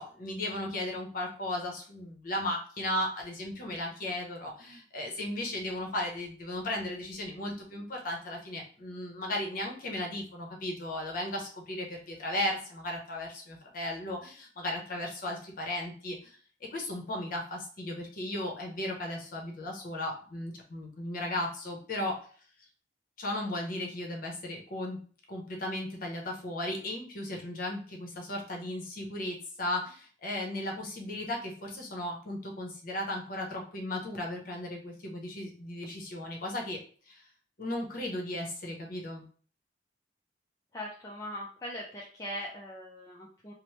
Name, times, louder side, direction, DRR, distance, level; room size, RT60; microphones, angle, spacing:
voice 1, 0.0-16.4 16.7-22.2 23.2-25.0 25.3-36.8 37.1-37.2 37.6-39.3, left 1 dB, 50° left, 0 dB, 0.7 m, -36 dB
voice 2, 40.7-43.5, equal, 20° left, -4 dB, 0.4 m, -40 dB
3.0 x 2.0 x 3.0 m, 0.44 s
head